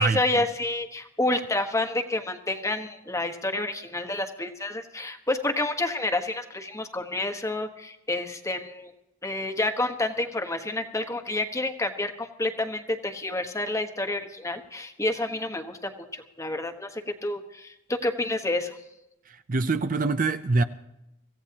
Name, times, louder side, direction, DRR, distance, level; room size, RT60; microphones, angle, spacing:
voice 1, 0.0-8.9 9.2-18.8, left 2 dB, 15° left, 1.3 m, -29 dB
voice 2, 19.5-20.6, right 3 dB, 40° right, 0.6 m, -24 dB
25.0 x 16.0 x 2.9 m
head